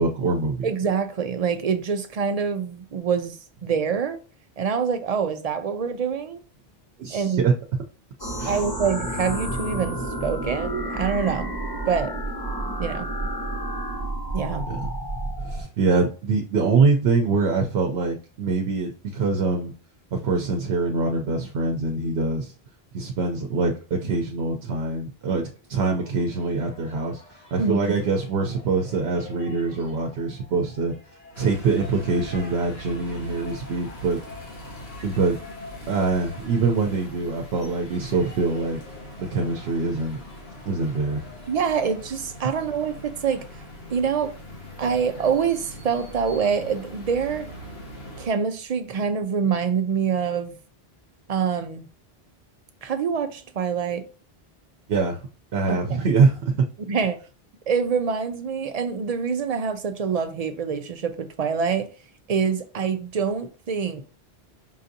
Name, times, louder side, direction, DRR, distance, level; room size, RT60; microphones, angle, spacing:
voice 1, 0.0-0.7 7.0-7.5 8.4-8.6 14.7-14.9 15.5-19.7 20.1-22.5 22.9-27.2 27.5-30.9 31.4-34.2 35.0-35.4 35.9-38.8 39.2-40.2 40.7-41.2 54.9-55.2 55.5-56.7, right 4 dB, 85° right, 0.9 m, -24 dB
voice 2, 0.6-4.2 4.6-6.4 7.1-7.5 8.5-11.5 11.9-12.2 12.8-13.1 14.3-14.7 27.6-27.9 41.5-43.4 43.9-44.3 44.8-47.5 48.2-50.6 51.3-51.9 52.8-54.0 55.7-55.8 56.9-57.2 57.7-61.9 62.3-64.0, right 6 dB, 50° right, 0.5 m, -25 dB
sound 1, 8.2-15.6, right 1 dB, 25° left, 0.7 m, -30 dB
sound 2, 25.5-42.5, left 3 dB, 50° left, 1.6 m, -48 dB
sound 3, 31.3-48.3, equal, 85° left, 1.2 m, -41 dB
5.6 x 2.6 x 2.6 m
omnidirectional pair, 1.0 m